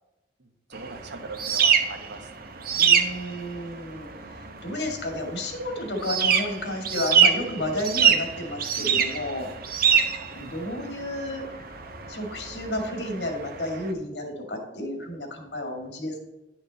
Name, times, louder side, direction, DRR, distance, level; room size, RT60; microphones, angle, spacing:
voice 1, 0.4-2.5 9.8-10.1, right 3 dB, 85° right, 7 dB, 1.1 m, -41 dB
sound 1, 0.7-13.9, right 7 dB, 55° right, 0.9 m, -25 dB
voice 2, 2.7-4.1 4.6-9.5 10.3-11.4 12.1-16.2, left 1 dB, 75° left, 3 dB, 2.0 m, -31 dB
10.0 x 6.0 x 4.0 m, 1.0 s
head